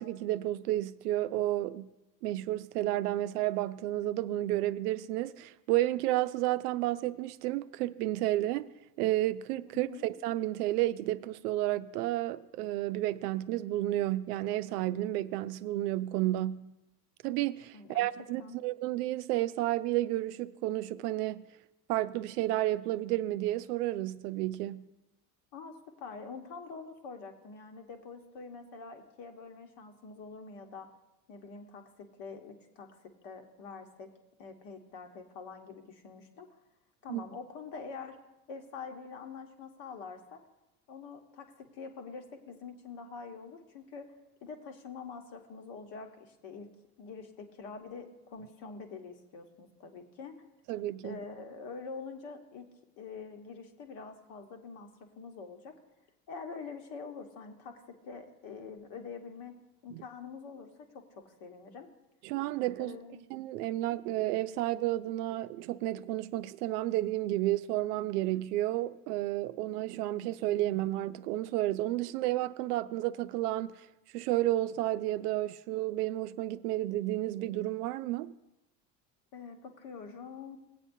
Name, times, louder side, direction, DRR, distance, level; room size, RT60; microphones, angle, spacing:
voice 1, 0.0-1.9 2.2-8.7 9.0-16.7 17.2-21.5 21.9-24.9 37.1-37.2 50.7-51.2 59.9-60.0 62.2-63.0 63.3-73.8 74.1-78.3, right 15 dB, 70° right, 0.5 m, -31 dB
voice 2, 17.7-18.1 18.4-18.6 25.5-30.9 31.3-34.1 34.4-36.5 37.0-38.2 38.5-40.4 40.9-44.1 44.4-46.7 47.0-50.3 51.0-52.7 53.0-55.7 56.3-59.6 59.8-61.9 62.8-63.2 79.3-80.6, left 5 dB, 60° left, 1.4 m, -45 dB
17.5 x 8.3 x 2.7 m
hypercardioid pair, 70°, 50 cm